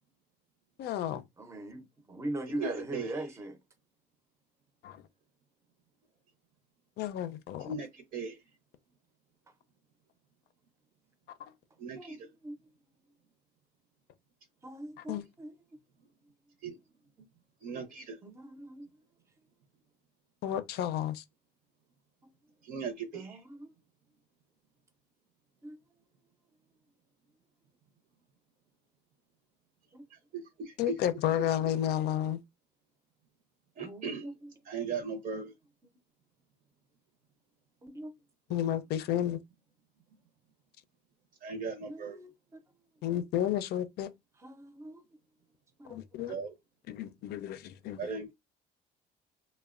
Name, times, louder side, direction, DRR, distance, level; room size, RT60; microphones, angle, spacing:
voice 1, 0.8-1.2 4.8-5.0 7.0-7.7 15.0-15.2 20.4-21.2 30.8-32.4 38.5-39.4 43.0-44.1 45.9-46.3 46.9-48.1, left 11 dB, 75° left, 0.4 m, -32 dB
voice 2, 1.4-3.6 12.0-12.6 14.6-15.5 18.2-18.9 23.1-23.7 25.6-25.8 29.9-30.0 33.8-34.5 37.8-38.1 41.8-42.6 44.4-45.0 45.8-46.0, right 1 dB, 15° right, 0.5 m, -41 dB
voice 3, 2.5-3.1 7.6-8.4 11.8-12.2 16.6-16.7 17.6-18.2 22.6-23.4 30.3-30.7 33.8-34.3 34.7-35.5 41.4-42.2 46.3-46.5 48.0-48.3, right 5 dB, 55° right, 0.7 m, -38 dB
3.1 x 2.1 x 2.4 m
cardioid pair, 110°, 17 cm